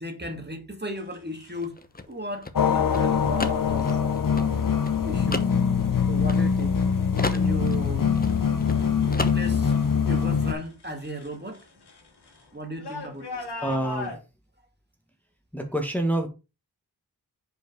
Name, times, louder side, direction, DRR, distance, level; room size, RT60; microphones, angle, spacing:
voice 1, 0.0-1.7 2.1-4.0 5.0-5.5 6.1-6.8 7.3-8.2 9.1-9.7 10.1-11.7 12.5-13.5, equal, 25° right, 2.0 m, -35 dB
sound 1, 1.0-1.6 2.8-3.1 3.7-4.1 4.7-5.2 5.6-9.9 10.1-14.2, left 3 dB, 85° left, 2.0 m, -41 dB
sound 2, 1.5-6.8 7.2-8.8 9.1-9.8, left 3 dB, 25° left, 0.9 m, -34 dB
sound 3, 2.5-10.5, left 6 dB, 55° left, 0.9 m, -23 dB
voice 2, 13.6-14.1 15.5-16.3, right 1 dB, 5° left, 1.4 m, -26 dB
5.4 x 4.5 x 5.3 m
cardioid pair, 50°, 38 cm